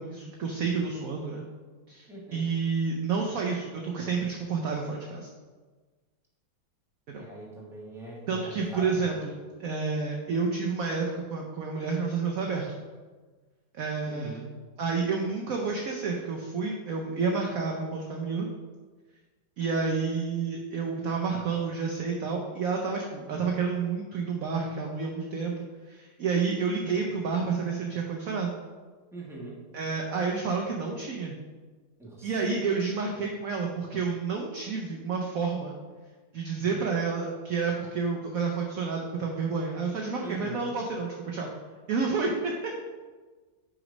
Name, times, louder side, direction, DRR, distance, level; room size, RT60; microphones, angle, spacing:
voice 1, 0.0-1.4 1.9-5.3 7.1-7.2 8.3-12.7 13.7-14.4 14.8-18.5 19.6-25.5 25.9-28.5 29.7-31.4 32.2-35.8 36.3-41.5 41.9-42.5, right 5 dB, 70° right, 1 dB, 0.8 m, -30 dB
voice 2, 2.1-2.5 7.2-9.0 14.0-14.5 29.1-29.6 32.0-32.3 40.2-40.6, right 2 dB, ahead, -5 dB, 1.2 m, -41 dB
6.0 x 4.1 x 5.1 m, 1.4 s
omnidirectional pair, 2.2 m